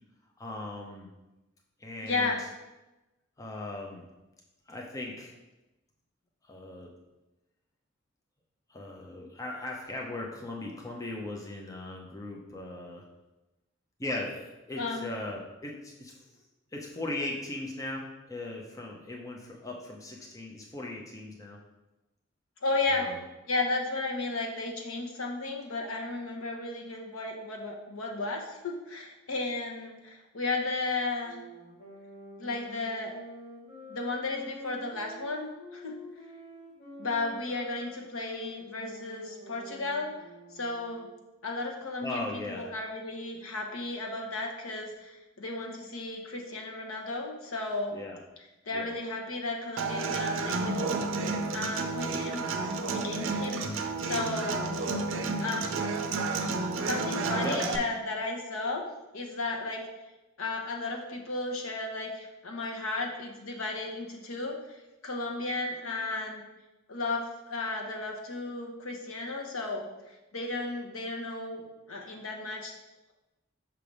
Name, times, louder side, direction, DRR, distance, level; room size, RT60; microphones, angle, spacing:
voice 1, 0.4-1.1 1.8-2.3 3.4-4.0 4.7-5.3 6.5-6.9 8.7-13.1 14.0-16.1 16.7-21.6 22.9-23.2 42.0-42.6 47.9-48.2 48.7-48.9 57.3-57.6, left 2 dB, 15° left, -1 dB, 0.6 m, -38 dB
voice 2, 2.0-2.4 14.8-15.1 22.6-23.1 23.5-31.4 32.4-33.1 33.9-35.5 35.7-35.9 37.0-40.1 40.5-41.1 41.4-48.0 48.7-50.8 51.5-52.4 52.9-54.6 55.4-56.0 56.9-58.8 59.1-59.8 60.4-64.8 65.0-66.4 66.9-71.6 71.9-72.7, left 3 dB, 80° left, 1 dB, 1.0 m, -34 dB
sound 1, 31.2-41.2, equal, 45° left, 1.9 m, -48 dB
Human voice / Acoustic guitar, 49.8-57.8, right 3 dB, 65° right, 0.5 m, -31 dB
5.8 x 3.3 x 5.2 m, 1.0 s
head